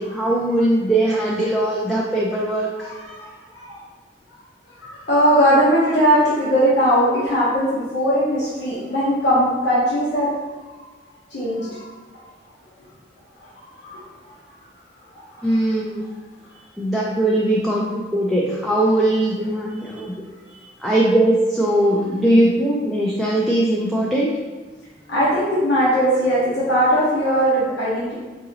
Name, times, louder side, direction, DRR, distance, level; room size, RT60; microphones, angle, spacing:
voice 1, 0.0-2.9 15.4-16.1 16.8-20.1 20.8-24.3, right 1 dB, ahead, -5 dB, 0.4 m, -20 dB
voice 2, 2.8-3.8 4.8-10.3 10.7-10.8 11.3-11.8 12.1-12.2 13.6-14.0 15.3-15.5 19.9-20.0 25.1-28.2, equal, 90° left, -9 dB, 1.0 m, -19 dB
4.8 x 2.7 x 2.8 m, 1.3 s
head